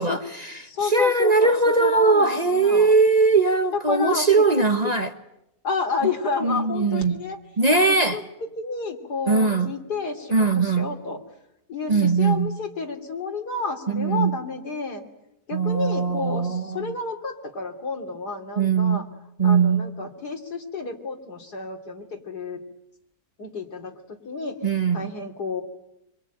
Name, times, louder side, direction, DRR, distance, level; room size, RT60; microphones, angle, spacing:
voice 1, 0.0-5.1 6.4-7.2 7.6-8.2 9.3-9.7 10.3-10.9 11.9-12.5 13.9-14.4 15.5-16.9 18.6-19.0 19.4-19.9 24.6-25.1, right 4 dB, 30° right, 1.1 m, -20 dB
voice 2, 0.6-1.5 1.8-2.9 3.7-4.4 5.6-7.4 7.9-8.2 8.6-11.2 11.7-15.0 15.5-19.0 19.4-22.6 23.4-24.6 24.9-25.6, left 4 dB, 85° left, 3.4 m, -30 dB
26.5 x 24.5 x 9.1 m
omnidirectional pair, 1.7 m